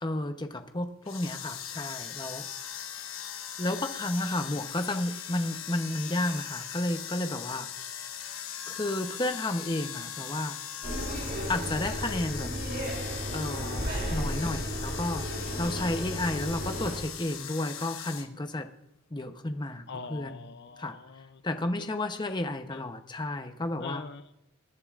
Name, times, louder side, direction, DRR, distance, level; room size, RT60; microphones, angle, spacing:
voice 1, 0.0-2.5 3.6-7.7 8.7-10.6 11.5-12.5 13.3-18.7 19.1-20.5 20.8-21.0 21.4-24.0, left 1 dB, 20° left, 7 dB, 0.8 m, -32 dB
sound 1, 1.0-18.3, left 9 dB, 70° left, 1.2 m, -40 dB
sound 2, 10.8-17.0, equal, 45° right, 2.8 m, -34 dB
voice 2, 15.7-16.1 19.9-21.4 22.7-22.8 23.8-24.3, left 4 dB, 55° left, 10 dB, 0.6 m, -43 dB
21.5 x 10.5 x 2.5 m, 0.84 s
head